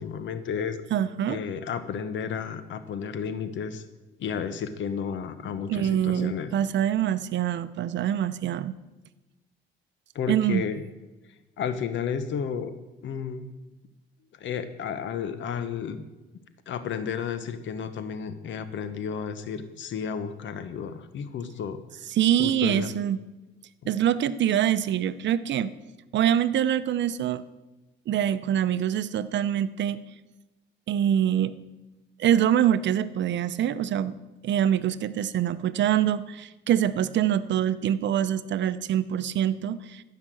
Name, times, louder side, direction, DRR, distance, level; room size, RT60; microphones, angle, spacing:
voice 1, 0.0-0.8 1.3-3.8 4.2-6.5 10.1-10.8 11.6-12.7 13.0-13.5 14.4-16.0 16.7-21.8 22.4-22.9 23.8-23.9, left 7 dB, 70° left, 11 dB, 1.1 m, -32 dB
voice 2, 0.9-1.4 5.7-8.8 10.3-10.6 22.1-23.2 23.9-25.7 26.1-27.4 28.1-30.0 30.9-31.6 32.2-34.2 34.4-40.0, right 10 dB, 65° right, 15 dB, 0.6 m, -25 dB
14.5 x 5.8 x 7.7 m, 1.1 s
cardioid pair, 90°, 20 cm